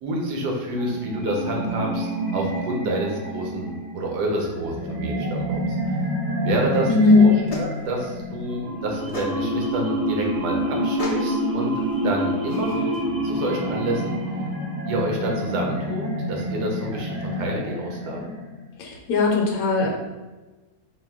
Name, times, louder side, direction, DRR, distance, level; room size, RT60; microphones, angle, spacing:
voice 1, 0.0-5.9 6.4-6.9 7.2-11.7 12.0-12.8 13.2-14.1 14.9-18.3, right 1 dB, 80° right, 0 dB, 1.3 m, -28 dB
sound 1, 0.7-18.7, equal, 50° right, 1.2 m, -28 dB
voice 2, 6.9-7.3 18.8-19.9, left 3 dB, 70° left, -2 dB, 1.0 m, -18 dB
sound 2, 7.0-13.0, left 1 dB, 50° left, 0.4 m, -38 dB
4.3 x 2.2 x 3.5 m, 1.2 s
omnidirectional pair, 1.7 m